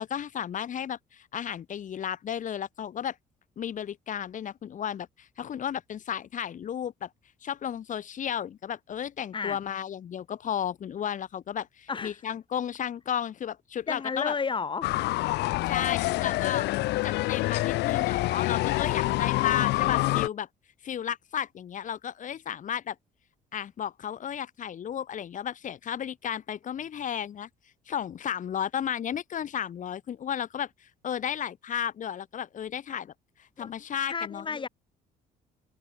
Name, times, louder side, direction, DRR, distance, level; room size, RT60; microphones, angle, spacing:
voice 1, 0.0-3.2 3.6-7.1 7.4-14.3 15.6-16.7 17.0-20.5 20.8-22.9 23.5-27.5 27.9-33.1 33.4-34.7, left 9 dB, 50° left, 3.0 m, -33 dB
voice 2, 11.9-12.2 13.9-14.9 15.3-15.6 33.6-33.7 34.1-34.7, left 5 dB, 30° left, 4.2 m, -32 dB
sound 1, 14.8-20.3, left 19 dB, 85° left, 1.4 m, -26 dB
cardioid pair, 110°, 17 cm